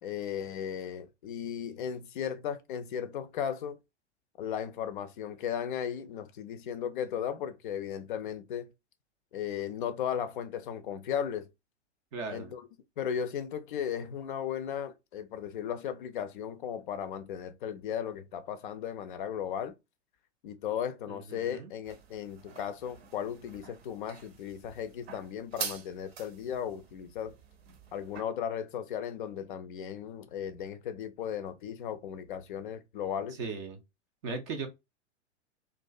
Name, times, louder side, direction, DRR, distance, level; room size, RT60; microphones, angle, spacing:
voice 1, 0.0-3.8 4.4-8.7 9.3-11.5 12.3-12.7 13.0-19.7 20.4-27.3 27.9-33.4, left 8 dB, 45° left, 0.4 m, -36 dB
voice 2, 12.1-12.5 21.1-21.7 33.4-33.8 34.2-34.7, right 4 dB, 25° right, 0.4 m, -37 dB
sound 1, 21.8-28.2, right 7 dB, 60° right, 0.7 m, -45 dB
2.4 x 2.4 x 2.2 m
figure-of-eight pair, 100°, 35 cm